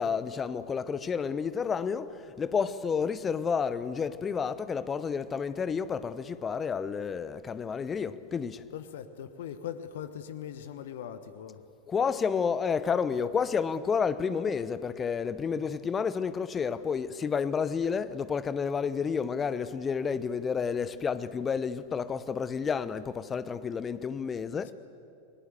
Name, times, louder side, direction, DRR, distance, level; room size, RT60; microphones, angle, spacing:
voice 1, 0.0-8.6 11.9-24.7, left 6 dB, 20° left, 0.9 m, -30 dB
voice 2, 8.7-11.6, left 9 dB, 55° left, 1.2 m, -40 dB
29.0 x 20.0 x 8.1 m
figure-of-eight pair, 90°, 0 cm